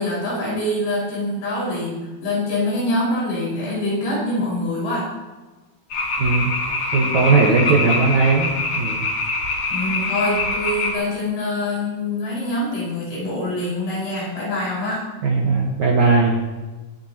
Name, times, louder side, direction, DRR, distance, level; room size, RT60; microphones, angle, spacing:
voice 1, 0.0-5.1 9.7-15.0, left 1 dB, 90° left, -6 dB, 7.4 m, -25 dB
sound 1, 5.9-11.0, left 3 dB, 60° left, 4.3 m, -24 dB
voice 2, 6.2-6.5 6.9-9.1 15.2-16.4, right 4 dB, 60° right, -2 dB, 2.2 m, -18 dB
25.0 x 9.4 x 3.0 m, 1.2 s
omnidirectional pair, 4.7 m